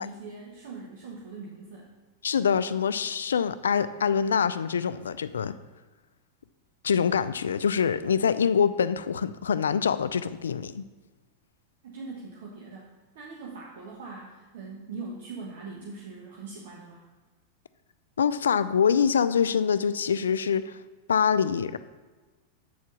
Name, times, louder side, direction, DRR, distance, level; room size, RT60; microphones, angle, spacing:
voice 1, 0.0-1.9 11.8-17.1, right 3 dB, 70° right, -2 dB, 1.3 m, -41 dB
voice 2, 2.2-5.6 6.8-10.8 18.2-20.8 21.1-21.8, left 7 dB, 85° left, 14 dB, 0.4 m, -25 dB
8.0 x 4.5 x 6.2 m, 1.3 s
hypercardioid pair, 105°, 0 cm